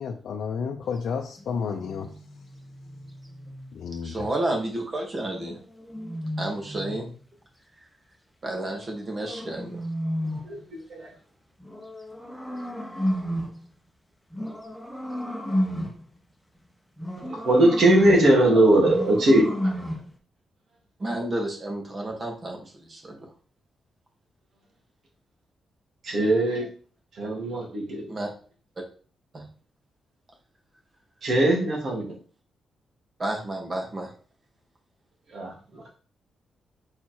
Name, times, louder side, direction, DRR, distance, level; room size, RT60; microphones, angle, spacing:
voice 1, 0.0-2.1 3.7-4.3, left 6 dB, 80° left, 2 dB, 0.6 m, -31 dB
sound 1, 1.4-3.8 5.4-7.2 8.6-10.6 11.6-13.6 14.3-16.1 17.0-18.4 18.8-20.1, equal, ahead, 1.3 m, -31 dB
voice 2, 4.0-5.6 6.4-7.1 8.4-9.8 21.0-23.2 28.1-28.3 29.3-29.4 33.2-34.1, right 1 dB, 40° right, 0 dB, 2.4 m, -31 dB
voice 3, 10.4-11.1 17.3-19.7 26.0-26.7 27.1-28.1 31.2-32.2 35.3-35.8, right 1 dB, 65° right, -2 dB, 2.8 m, -21 dB
4.8 x 4.4 x 4.6 m, 0.39 s
cardioid pair, 90°, 0 cm